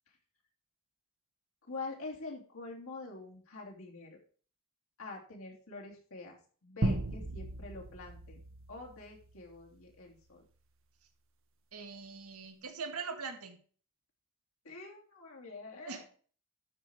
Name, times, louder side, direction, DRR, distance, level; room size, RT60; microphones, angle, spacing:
voice 1, 1.7-4.2 5.0-8.4 8.7-10.4 14.6-16.0, left 3 dB, 65° left, -1 dB, 3.1 m, -46 dB
sound 1, 6.8-9.6, right 1 dB, 60° right, 1.2 m, -36 dB
voice 2, 11.7-13.6 15.8-16.0, right 5 dB, 80° right, 5 dB, 1.8 m, -41 dB
12.5 x 5.4 x 4.6 m, 0.42 s
head